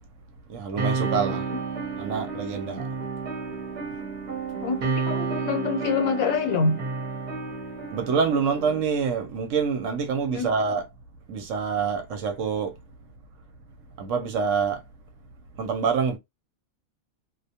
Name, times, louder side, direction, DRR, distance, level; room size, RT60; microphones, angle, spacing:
voice 1, 0.5-1.4 2.0-2.9 3.8-4.0 7.9-10.8 11.3-12.7 14.0-14.8 15.6-16.2, right 6 dB, 70° right, 0.9 m, -26 dB
sound 1, 0.8-8.8, right 4 dB, 40° right, 0.7 m, -31 dB
voice 2, 4.6-6.8 10.3-10.5, left 5 dB, 75° left, 1.1 m, -26 dB
2.3 x 2.2 x 2.7 m
omnidirectional pair, 1.5 m